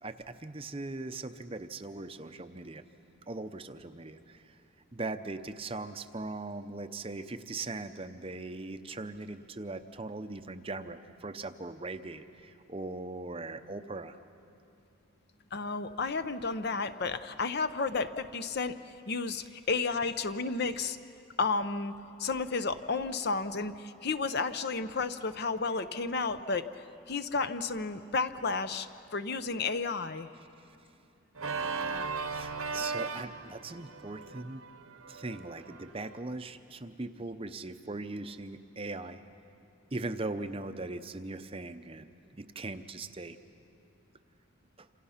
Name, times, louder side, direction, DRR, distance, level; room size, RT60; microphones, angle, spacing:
voice 1, 0.0-2.8 3.3-4.6 4.9-14.2 32.3-34.6 35.1-39.2 39.9-43.4 44.8-44.9, right 2 dB, 25° right, 9 dB, 0.6 m, -40 dB
voice 2, 15.5-18.8 19.1-21.0 21.4-21.9 22.2-26.7 27.1-30.3, left 4 dB, 50° left, 11 dB, 0.7 m, -32 dB
Organ, 31.4-36.2, right 4 dB, 80° right, 1.1 m, -37 dB
27.5 x 27.0 x 5.7 m, 2.7 s
head